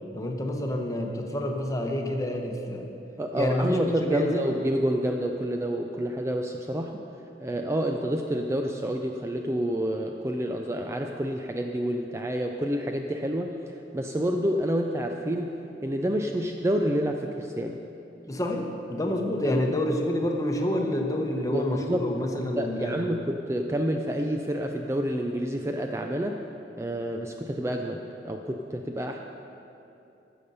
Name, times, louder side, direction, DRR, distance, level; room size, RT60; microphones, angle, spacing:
voice 1, 0.1-2.9 3.3-4.4 18.3-23.0, left 1 dB, 20° left, 2 dB, 0.9 m, -28 dB
voice 2, 3.2-7.0 7.4-17.8 19.4-19.6 21.4-22.1 22.6-26.4 26.8-29.2, equal, 15° right, 3 dB, 0.4 m, -28 dB
15.0 x 6.7 x 5.5 m, 2.9 s
head